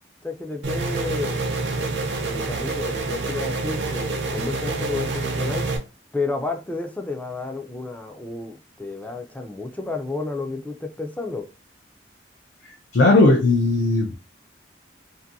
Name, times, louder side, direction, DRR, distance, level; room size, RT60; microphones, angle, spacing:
voice 1, 0.2-1.9 2.2-5.7 6.1-11.5, left 3 dB, 10° left, 0.3 m, -31 dB
sound 1, 0.6-5.8, right 3 dB, 75° right, 0.6 m, -27 dB
voice 2, 12.9-14.2, left 2 dB, 80° left, 0.5 m, -17 dB
2.6 x 2.5 x 2.5 m
head